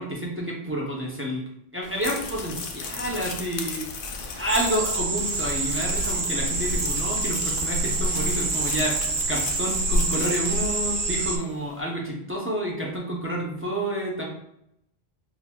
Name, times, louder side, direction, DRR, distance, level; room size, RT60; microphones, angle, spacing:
voice 1, 0.0-1.4 1.7-3.9 4.3-14.3, right 1 dB, 15° right, -3 dB, 0.4 m, -29 dB
sound 1, 1.8-11.4, left 4 dB, 60° left, 0.7 m, -37 dB
sound 2, 4.5-11.4, right 2 dB, 75° right, 0.9 m, -26 dB
5.8 x 2.1 x 2.2 m, 0.77 s
omnidirectional pair, 1.1 m